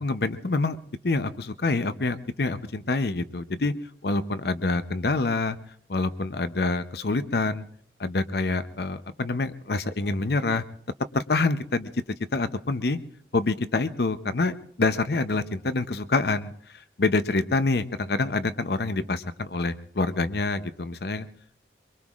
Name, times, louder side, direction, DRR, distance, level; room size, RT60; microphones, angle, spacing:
voice 1, 0.0-0.8 1.0-3.7 4.0-5.6 5.9-7.6 8.0-10.6 11.1-11.9 12.3-13.0 13.3-16.5 17.0-21.3, left 3 dB, 60° left, 12 dB, 0.7 m, -26 dB
24.0 x 23.0 x 2.4 m, 0.64 s
head